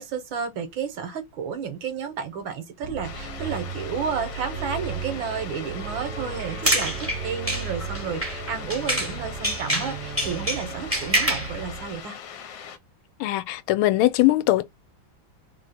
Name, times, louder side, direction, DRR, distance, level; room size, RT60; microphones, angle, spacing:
voice 1, 0.0-12.2, right 6 dB, 70° right, 1.8 m, -32 dB
Organ, 2.8-12.0, right 6 dB, 45° right, 1.2 m, -35 dB
sound 1, 3.0-12.8, left 8 dB, 70° left, 1.4 m, -41 dB
sound 2, 6.4-9.2 9.4-11.5, right 1 dB, 10° right, 0.8 m, -26 dB
voice 2, 13.2-14.6, left 16 dB, 85° left, 1.4 m, -21 dB
3.6 x 3.0 x 4.2 m
omnidirectional pair, 2.2 m